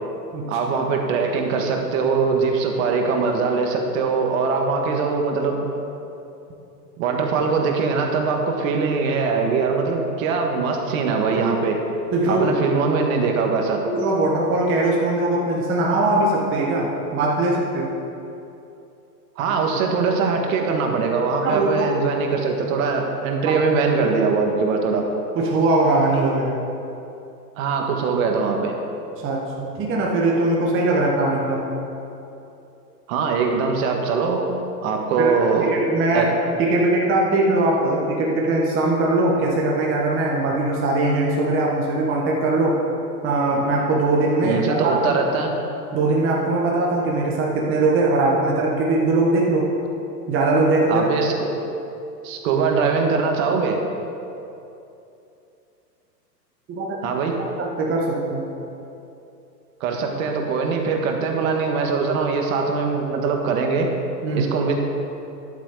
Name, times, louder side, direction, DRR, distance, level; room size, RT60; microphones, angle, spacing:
voice 1, 0.5-5.7 7.0-11.8 12.3-13.8 19.4-25.1 27.6-28.7 33.1-34.5 34.8-35.7 36.1-36.3 44.4-45.5 50.9-51.5 52.2-53.8 57.0-57.3 59.8-63.9 64.3-64.7, right 4 dB, 55° right, 2 dB, 1.7 m, -22 dB
voice 2, 12.1-12.4 13.8-17.9 21.4-21.9 23.4-23.6 25.3-26.6 29.2-31.7 35.2-36.3 36.6-42.8 43.2-45.5 45.9-49.7 50.3-51.0 56.7-57.0 57.4-58.5 64.2-64.5, right 2 dB, 25° right, -2 dB, 1.4 m, -21 dB
11.0 x 8.0 x 5.0 m, 2.8 s
hypercardioid pair, 120°, 49 cm